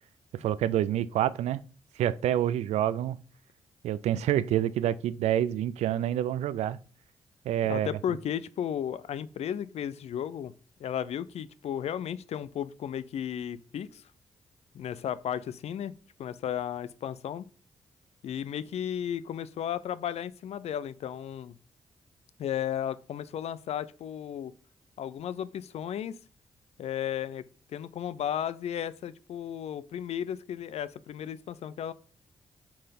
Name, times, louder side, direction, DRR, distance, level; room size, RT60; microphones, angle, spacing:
voice 1, 0.3-1.6 2.0-3.2 3.8-6.8 7.5-7.9, right 11 dB, 85° right, 0.4 m, -27 dB
voice 2, 7.7-10.5 10.8-14.0 14.7-15.9 16.2-17.5 18.2-21.5 22.4-24.5 25.0-26.2 26.8-27.4 27.7-31.9, left 9 dB, 75° left, 0.6 m, -34 dB
7.4 x 4.7 x 5.3 m
cardioid pair, 60°, 11 cm